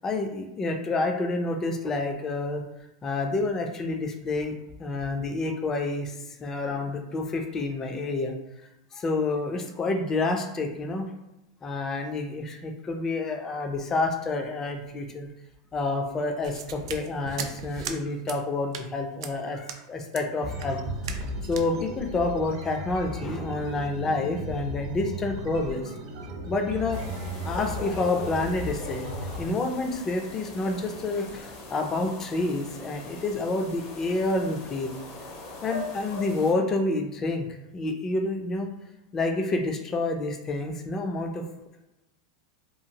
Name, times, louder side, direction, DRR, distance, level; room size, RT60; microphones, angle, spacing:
voice 1, 0.0-2.6 3.0-4.5 4.8-8.3 8.9-11.1 11.6-15.3 15.7-20.8 21.5-25.9 26.5-27.0 27.4-29.1 29.4-34.9 35.6-37.5 37.7-38.7 39.1-41.4, left 2 dB, 20° left, 4 dB, 0.3 m, -28 dB
sound 1, 16.4-18.0 18.3-18.4 18.7-18.9 19.2-19.3 19.7-19.8 20.1-20.2 20.6-20.7 21.0-21.3 21.5-21.7, right 7 dB, 85° right, 0.3 m, -37 dB
sound 2, 20.4-29.4, right 1 dB, 50° right, 0.6 m, -36 dB
sound 3, 26.9-36.5, left 2 dB, 70° left, 0.8 m, -40 dB
2.8 x 2.4 x 2.7 m, 0.94 s
supercardioid pair, 155°, 2 cm